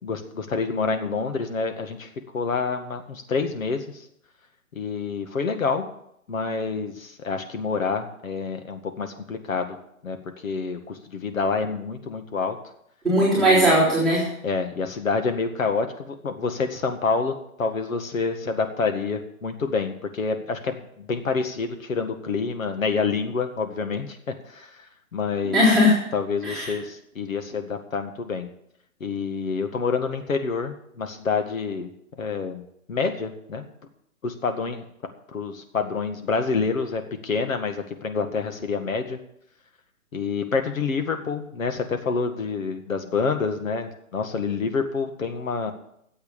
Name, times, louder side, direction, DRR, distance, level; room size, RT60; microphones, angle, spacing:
voice 1, 0.0-2.1 2.3-4.0 4.8-5.9 6.3-9.8 10.0-10.2 10.4-12.6 13.4-13.8 14.4-24.2 24.5-24.8 25.1-25.6 26.1-28.5 29.0-31.9 32.2-32.6 32.9-33.7 34.2-34.8 35.3-39.2 40.1-45.7, left 4 dB, 70° left, 6 dB, 2.0 m, -27 dB
voice 2, 13.0-14.3 25.5-25.9 26.4-26.7, equal, ahead, -11 dB, 3.7 m, -18 dB
12.5 x 8.0 x 7.0 m, 0.75 s
hypercardioid pair, 160°, 42 cm